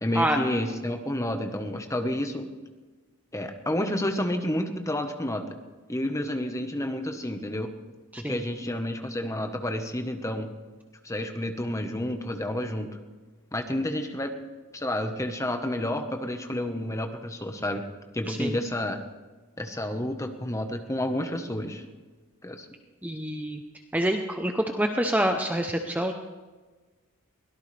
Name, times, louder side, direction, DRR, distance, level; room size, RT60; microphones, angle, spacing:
voice 1, 0.0-2.5 3.3-5.5 5.9-7.7 8.2-10.5 11.0-12.9 13.5-14.3 14.7-17.8 18.1-19.0 19.6-21.8 22.4-22.7, left 1 dB, 15° left, 6 dB, 1.2 m, -30 dB
voice 2, 23.0-23.6 23.9-26.1, right 1 dB, 5° right, 4 dB, 0.8 m, -27 dB
23.0 x 17.5 x 3.4 m, 1.3 s
head